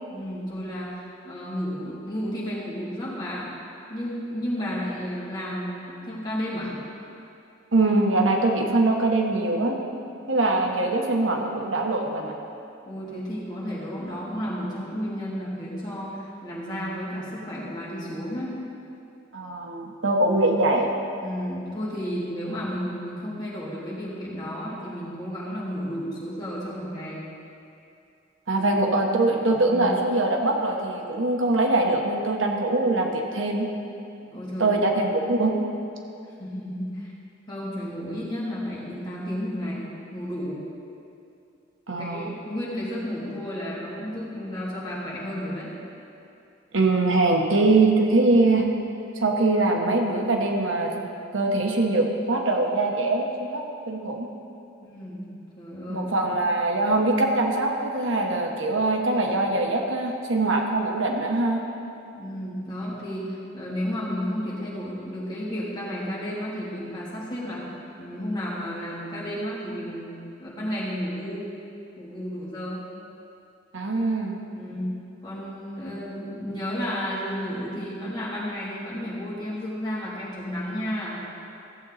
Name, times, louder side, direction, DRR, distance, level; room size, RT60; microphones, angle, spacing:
voice 1, 0.1-3.5 3.9-6.7 12.8-18.5 21.2-27.2 28.5-28.7 29.7-29.9 34.3-35.0 36.4-37.1 37.5-40.6 42.0-45.7 54.8-55.3 55.6-56.3 62.1-70.1 70.4-71.5 72.0-72.8 74.5-81.2, equal, 25° left, -8 dB, 2.9 m, -32 dB
voice 2, 7.7-9.8 10.3-12.3 19.3-20.9 28.5-33.7 34.6-35.5 41.9-42.3 46.7-48.7 49.2-51.1 51.3-54.3 55.9-61.6 73.7-74.4, right 2 dB, 80° right, 1 dB, 1.2 m, -23 dB
15.0 x 7.8 x 4.1 m, 2.6 s
head